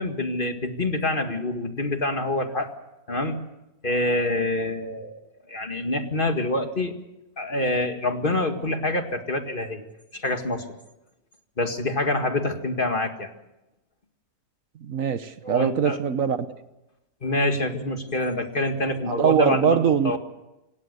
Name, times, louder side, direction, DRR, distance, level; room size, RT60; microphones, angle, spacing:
voice 1, 0.0-2.7 3.1-3.4 3.8-5.1 5.5-6.9 7.4-9.8 10.1-10.6 11.6-13.3 15.4-16.0 17.2-19.8 20.0-20.2, left 2 dB, 35° left, 6 dB, 2.1 m, -26 dB
voice 2, 14.8-16.4 19.1-20.2, right 7 dB, 65° right, 12 dB, 1.4 m, -22 dB
26.0 x 17.5 x 6.8 m, 0.93 s
omnidirectional pair, 1.6 m